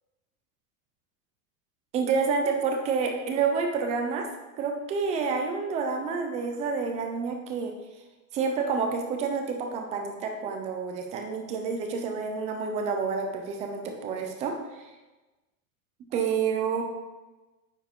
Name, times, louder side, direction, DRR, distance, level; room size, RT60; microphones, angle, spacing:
voice 1, 1.9-4.3 4.6-7.7 8.3-14.5 14.8-14.9 16.1-16.8, right 5 dB, 15° right, 3 dB, 0.4 m, -28 dB
9.4 x 4.9 x 3.6 m, 1.1 s
supercardioid pair, 160°, 46 cm